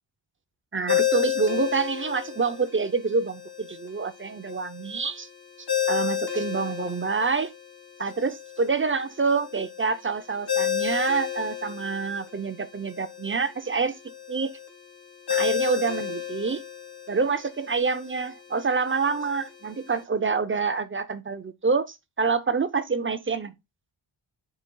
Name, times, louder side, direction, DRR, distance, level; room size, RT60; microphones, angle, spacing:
voice 1, 0.7-5.3 5.9-7.5 8.0-13.9 14.3-14.5 15.3-16.6 17.1-23.5, right 4 dB, 25° right, 0.5 m, -27 dB
Ringtone, 0.9-20.0, left 11 dB, 50° left, 1.7 m, -32 dB
12.0 x 4.0 x 2.2 m
wide cardioid pair, 150°, 48 cm